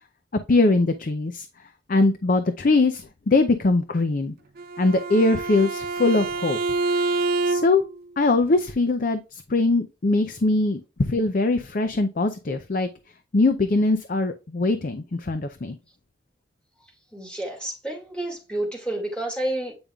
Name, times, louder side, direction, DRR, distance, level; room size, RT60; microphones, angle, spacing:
voice 1, 0.5-1.5 1.9-4.3 4.8-6.6 7.4-7.8 8.2-12.9 13.3-15.8, left 2 dB, 45° left, 0.5 m, -22 dB
Bowed string instrument, 4.6-8.0, right 3 dB, 50° right, 0.5 m, -27 dB
voice 2, 17.1-19.7, right 1 dB, 5° left, 2.1 m, -30 dB
8.7 x 5.2 x 2.3 m
head